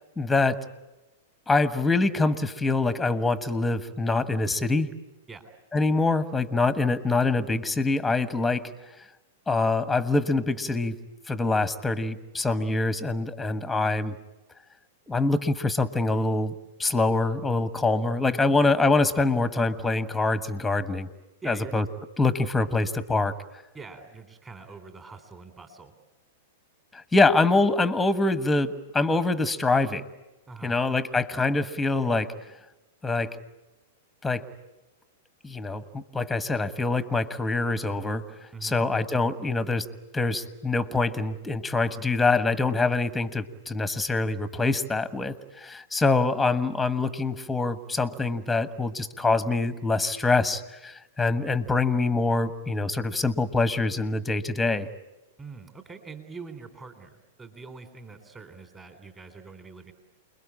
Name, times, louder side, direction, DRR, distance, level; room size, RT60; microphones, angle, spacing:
voice 1, 0.2-0.6 1.5-4.9 5.7-8.7 9.5-14.2 15.1-16.5 16.8-21.1 21.4-21.8 22.2-23.4 26.9-30.0 30.6-32.3 33.0-33.4 34.2-34.5 35.4-38.3 38.6-39.9 40.1-54.9, left 3 dB, 5° left, 13 dB, 1.4 m, -25 dB
voice 2, 21.4-21.8 23.7-25.9 30.5-30.8 38.5-38.8 55.4-59.9, right 4 dB, 20° right, 8 dB, 3.5 m, -43 dB
29.0 x 21.5 x 8.6 m, 1.0 s
hypercardioid pair, 105°, 0 cm